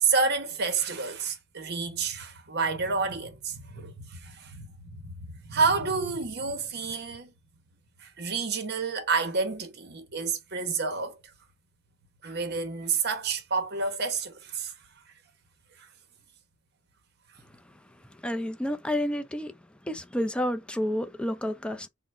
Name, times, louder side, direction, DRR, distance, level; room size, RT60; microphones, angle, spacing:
voice 1, 0.0-7.3 8.0-11.2 12.2-14.7, right 4 dB, 55° right, 1.0 m, -29 dB
voice 2, 18.1-19.5 19.8-21.9, left 1 dB, 5° left, 0.4 m, -30 dB
3.8 x 2.1 x 4.2 m
head